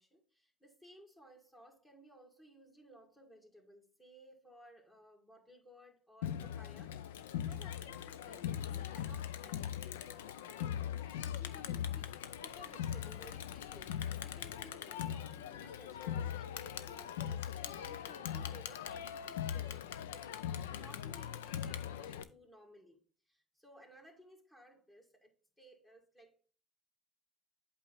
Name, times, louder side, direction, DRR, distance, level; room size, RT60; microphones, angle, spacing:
voice 1, 0.0-10.3 10.6-10.7 11.0-12.2 12.4-26.4, equal, 20° left, 2.1 m, -59 dB
Crowd, 6.2-22.2, left 10 dB, 80° left, 0.4 m, -40 dB
8.1 x 4.4 x 3.9 m
hypercardioid pair, 70°, 0 cm